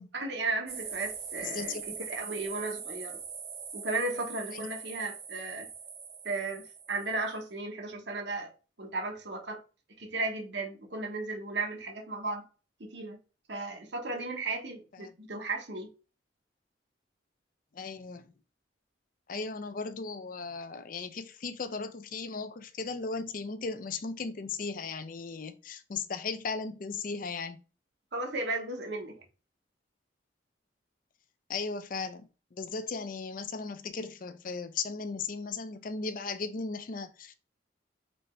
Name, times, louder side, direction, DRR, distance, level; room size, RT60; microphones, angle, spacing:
voice 1, 0.1-3.2 3.7-5.7 6.2-8.5 8.8-9.6 10.0-12.4 12.8-13.2 13.5-15.9 28.1-29.2, right 3 dB, 65° right, 1.0 m, -35 dB
sound 1, 0.7-7.3, right 6 dB, 35° right, 0.8 m, -42 dB
voice 2, 1.4-1.8 4.5-4.6 15.0-15.1 17.7-18.3 19.3-27.6 31.5-37.3, left 4 dB, 45° left, 0.5 m, -37 dB
4.1 x 3.3 x 3.1 m
head